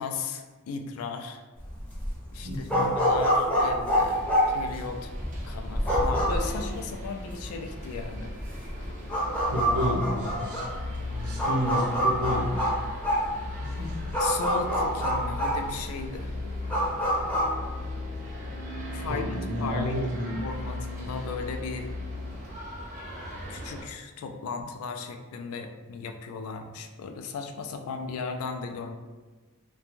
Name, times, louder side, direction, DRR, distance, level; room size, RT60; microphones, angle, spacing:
voice 1, 0.0-1.4 2.3-5.1 5.4-8.3 14.2-16.3 18.9-20.0 20.4-21.9 23.5-29.0, left 5 dB, 75° left, 6 dB, 0.3 m, -36 dB
sound 1, 1.6-17.5, equal, 5° left, 0.6 m, -27 dB
voice 2, 2.4-2.9 9.5-10.7 11.0-12.7 13.6-14.0 19.1-20.4, equal, 85° right, -2 dB, 0.6 m, -31 dB
sound 2, 4.1-23.8, right 1 dB, 35° right, 0.5 m, -43 dB
sound 3, 8.5-22.4, left 3 dB, 55° left, 0.8 m, -38 dB
2.5 x 2.2 x 3.0 m, 1.3 s
head